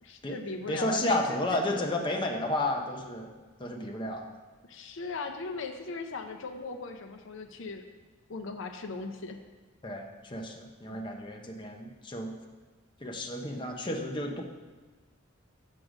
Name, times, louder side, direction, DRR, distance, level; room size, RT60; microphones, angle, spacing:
voice 1, 0.0-1.9 4.6-7.8 8.3-9.4 10.9-11.0, left 4 dB, 65° left, 5 dB, 0.6 m, -38 dB
voice 2, 0.7-3.3 3.6-4.2 9.8-12.3 13.0-14.4, left 1 dB, 25° left, 2 dB, 0.7 m, -32 dB
7.6 x 6.4 x 4.9 m, 1.3 s
head